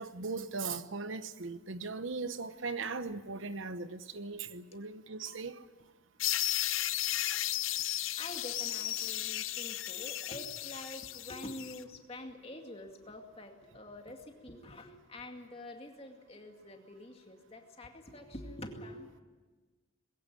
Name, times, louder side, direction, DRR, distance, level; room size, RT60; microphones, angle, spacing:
voice 1, 0.0-5.5, right 4 dB, 65° right, 0.9 m, -38 dB
sound 1, 6.2-11.8, left 13 dB, 70° left, 0.7 m, -34 dB
voice 2, 8.2-19.2, left 1 dB, 25° left, 2.2 m, -46 dB
21.0 x 16.5 x 9.9 m
head